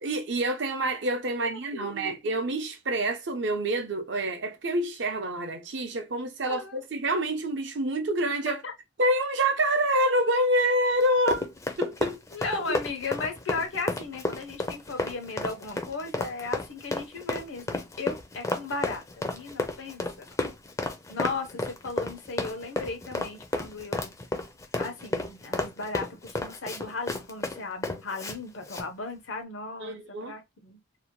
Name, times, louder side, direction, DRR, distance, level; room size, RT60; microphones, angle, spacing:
voice 1, 0.0-8.6 9.0-11.5 11.8-12.2 29.8-30.3, right 1 dB, 65° right, 0.6 m, -27 dB
voice 2, 1.4-2.1 6.5-6.8 8.5-8.7 12.3-20.3 21.1-24.1 24.8-30.8, left 3 dB, 90° left, 0.8 m, -36 dB
Run, 11.0-28.4 28.7-28.9, left 2 dB, 15° left, 0.4 m, -32 dB
2.7 x 2.1 x 2.9 m
head